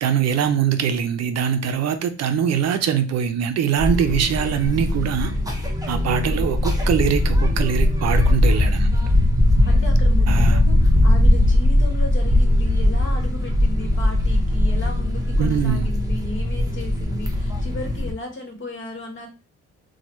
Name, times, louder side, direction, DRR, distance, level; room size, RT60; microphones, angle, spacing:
voice 1, 0.0-5.3 5.9-8.9 10.3-10.6 15.4-15.9, right 8 dB, 60° right, 0.5 m, -22 dB
sound 1, 3.8-18.1, left 1 dB, 10° right, 0.8 m, -19 dB
voice 2, 6.0-6.5 9.6-19.3, left 1 dB, 40° left, 1.1 m, -35 dB
2.9 x 2.2 x 3.0 m
cardioid pair, 90°, 30 cm